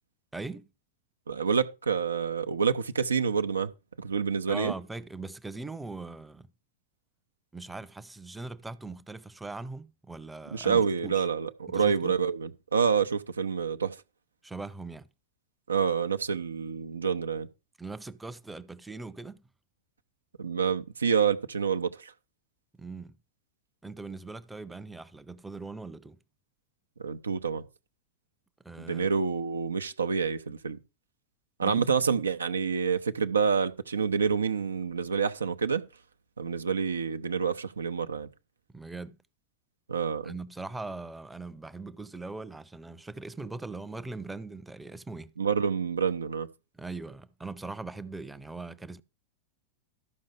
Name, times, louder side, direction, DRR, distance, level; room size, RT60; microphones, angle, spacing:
voice 1, 0.3-0.7 4.5-6.5 7.5-11.2 11.7-12.2 14.4-15.1 17.8-19.5 22.8-23.2 23.8-26.2 28.6-29.1 31.6-31.9 38.7-39.2 40.2-45.3 46.7-49.0, right 3 dB, 5° right, 0.7 m, -40 dB
voice 2, 1.3-3.7 4.0-4.7 10.5-14.0 15.7-17.5 20.4-22.1 27.0-27.6 28.8-30.8 31.6-35.8 36.4-38.3 39.9-40.3 45.4-46.5, right 6 dB, 75° right, 0.7 m, -28 dB
13.0 x 5.4 x 5.1 m
figure-of-eight pair, 90°, 0 cm